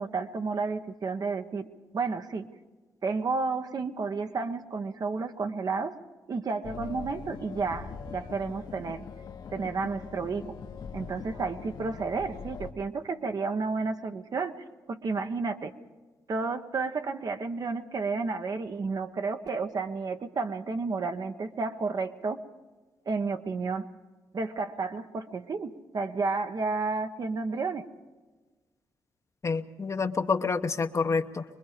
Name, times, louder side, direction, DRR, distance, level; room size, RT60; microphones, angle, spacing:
voice 1, 0.0-1.7 1.9-2.4 3.0-5.9 6.3-9.1 9.5-10.4 10.9-14.5 14.9-15.7 16.3-22.4 23.1-23.8 24.3-27.8, right 4 dB, 50° right, 7 dB, 1.2 m, -31 dB
sound 1, 6.6-12.7, left 6 dB, 60° left, 1.3 m, -42 dB
voice 2, 29.4-31.4, left 4 dB, 40° left, 8 dB, 1.0 m, -28 dB
24.0 x 21.5 x 5.1 m, 1.3 s
cardioid pair, 70°, 8 cm